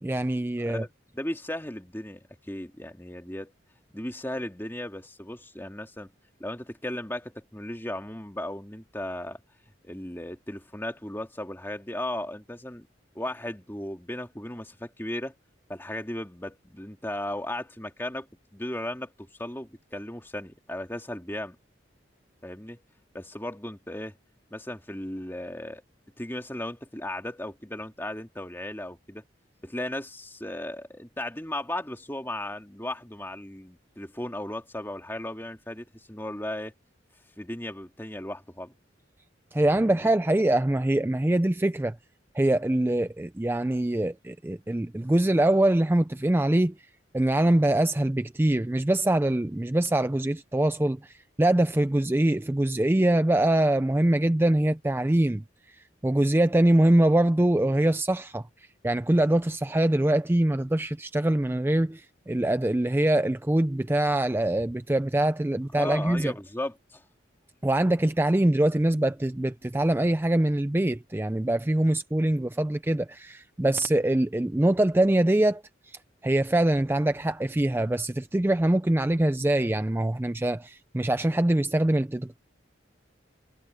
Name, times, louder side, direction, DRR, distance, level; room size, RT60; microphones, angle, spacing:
voice 1, 0.0-0.8 39.5-42.0 42.3-46.7 47.1-66.3 67.6-82.4, right 1 dB, 10° right, 0.4 m, -24 dB
voice 2, 0.6-3.5 3.9-6.1 6.4-9.4 9.8-12.9 13.1-15.3 15.7-18.3 18.5-21.6 22.4-22.8 23.1-24.2 24.5-25.8 26.2-29.2 29.6-36.7 37.4-38.7 39.8-40.1 65.7-67.0, left 1 dB, 10° left, 2.5 m, -36 dB
head